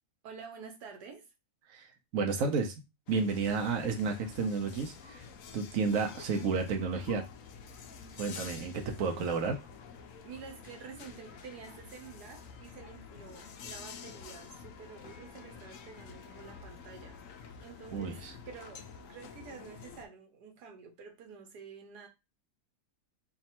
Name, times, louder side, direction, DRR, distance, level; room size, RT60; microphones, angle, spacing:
voice 1, 0.2-1.3 10.2-17.2 17.6-22.1, right 5 dB, 85° right, 1.5 m, -49 dB
voice 2, 2.1-2.7 3.1-5.2 5.5-7.2 8.2-9.6 17.9-18.3, right 4 dB, 65° right, 1.1 m, -31 dB
sound 1, 3.1-20.1, left 6 dB, 65° left, 0.9 m, -49 dB
3.5 x 2.5 x 4.2 m
omnidirectional pair, 1.7 m